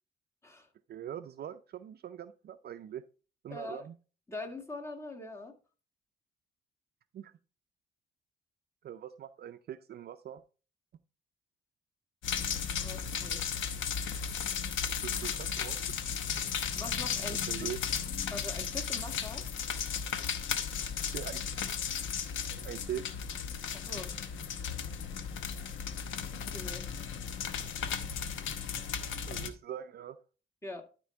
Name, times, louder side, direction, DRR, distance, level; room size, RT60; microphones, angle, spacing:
voice 1, 0.9-3.0 3.4-3.9 7.1-7.3 8.8-10.4 15.0-16.1 17.3-17.8 21.1-21.6 22.5-23.1 29.3-30.2, right 10 dB, 55° right, 0.5 m, -42 dB
voice 2, 3.5-3.8 4.3-5.6 12.8-13.5 16.7-17.7 18.3-19.5 23.7-24.1 26.4-27.2 30.6-30.8, left 2 dB, 15° left, 2.0 m, -43 dB
sound 1, 12.2-29.5, left 7 dB, 80° left, 1.0 m, -35 dB
12.5 x 4.5 x 3.4 m
cardioid pair, 90°, 20 cm